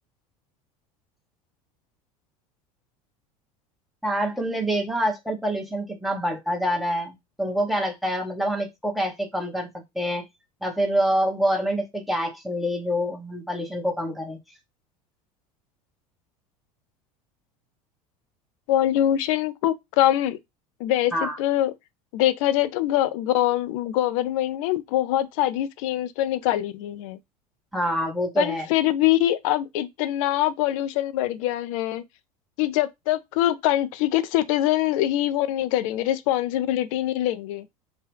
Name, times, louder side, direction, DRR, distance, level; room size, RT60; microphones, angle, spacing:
voice 1, 4.0-10.2 10.6-14.4 21.1-21.4 27.7-28.7, equal, ahead, 1.0 m, -26 dB
voice 2, 18.7-20.4 20.8-21.7 22.1-27.2 28.4-32.0 32.6-37.7, left 13 dB, 60° left, 0.4 m, -23 dB
2.8 x 2.1 x 3.3 m
figure-of-eight pair, 75°, 20 cm